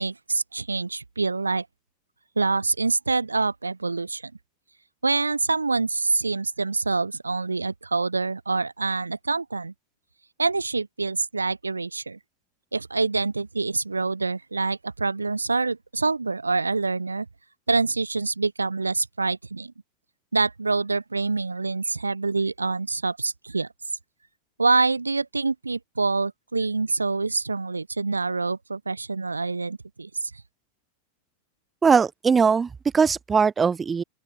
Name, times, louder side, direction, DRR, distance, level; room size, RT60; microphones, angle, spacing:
voice 1, 0.0-1.7 2.4-4.3 5.0-9.7 10.4-12.2 12.7-17.3 17.7-19.7 20.3-23.7 24.6-30.1, right 3 dB, 80° right, 4.4 m, -26 dB
voice 2, 31.8-34.0, right 5 dB, 15° right, 5.1 m, -20 dB
open air
figure-of-eight pair, 90°, 0 cm